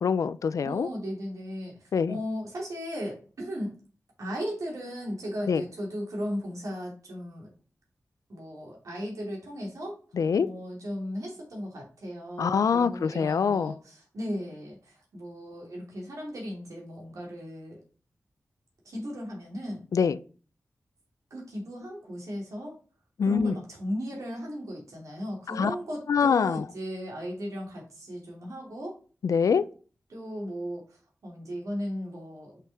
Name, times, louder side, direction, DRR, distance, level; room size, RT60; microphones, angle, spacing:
voice 1, 0.0-0.9 1.9-2.2 5.5-5.6 10.2-10.5 12.4-13.7 19.9-20.2 23.2-23.5 25.5-25.7 26.1-26.6 29.2-29.6, left 6 dB, 85° left, 0.4 m, -24 dB
voice 2, 0.6-1.7 2.1-3.7 4.2-7.5 8.3-10.0 10.4-17.8 18.8-19.8 21.3-22.8 23.2-29.0 30.1-32.6, equal, 80° right, 2.7 m, -36 dB
5.9 x 5.8 x 3.5 m
wide cardioid pair, 115°, 6 cm